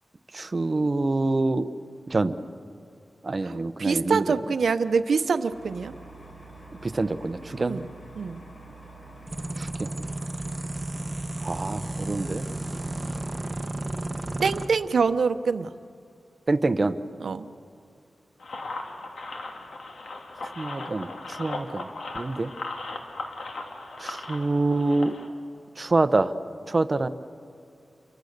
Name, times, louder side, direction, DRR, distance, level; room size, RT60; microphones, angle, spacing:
voice 1, 0.3-1.7 2.1-2.4 3.2-4.2 6.8-7.8 9.6-10.0 11.4-12.4 16.5-17.0 20.4-21.9 22.1-22.5 24.0-25.2 25.8-26.3 26.7-27.1, right 2 dB, 35° right, 11 dB, 0.9 m, -26 dB
voice 2, 3.4-5.9 7.6-7.9 8.2-8.4 14.4-15.7 17.2-17.5, right 5 dB, 80° right, 11 dB, 0.8 m, -25 dB
sound 1, 5.5-13.4, right 2 dB, 65° left, 6.3 m, -46 dB
sound 2, 9.3-14.7, right 2 dB, 15° right, 1.6 m, -33 dB
sound 3, 18.4-25.3, left 2 dB, 85° left, 2.2 m, -37 dB
29.0 x 23.5 x 6.7 m, 2.5 s
wide cardioid pair, 100°, 0 cm